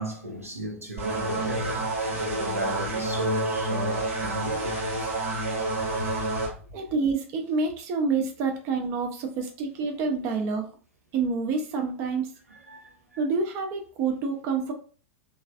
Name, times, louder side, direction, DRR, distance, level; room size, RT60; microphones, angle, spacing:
voice 1, 0.0-5.1 12.5-12.8, right 1 dB, 85° right, 0.7 m, -35 dB
sound 1, 1.0-6.5, right 2 dB, 70° right, 1.1 m, -29 dB
voice 2, 6.7-10.7 11.1-12.3 13.2-14.7, right 4 dB, 40° right, 0.5 m, -27 dB
3.1 x 2.4 x 2.3 m
figure-of-eight pair, 90°, 8 cm